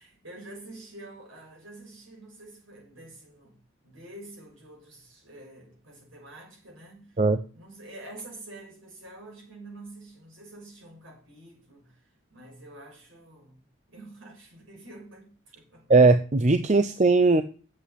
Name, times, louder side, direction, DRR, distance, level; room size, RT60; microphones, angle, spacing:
voice 1, 0.0-7.2 7.5-13.6 13.9-15.9, right 2 dB, 65° right, 6.9 m, -47 dB
voice 2, 15.9-17.4, right 3 dB, 35° right, 0.6 m, -19 dB
8.4 x 8.0 x 8.4 m
head